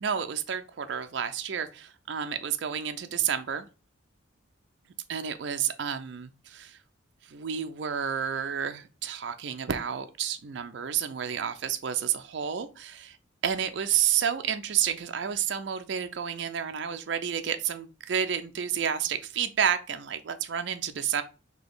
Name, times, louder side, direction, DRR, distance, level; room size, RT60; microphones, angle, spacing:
voice 1, 0.0-3.7 5.1-6.8 7.3-13.2 13.4-21.2, right 8 dB, 60° right, 0.4 m, -30 dB
3.9 x 2.9 x 3.8 m
head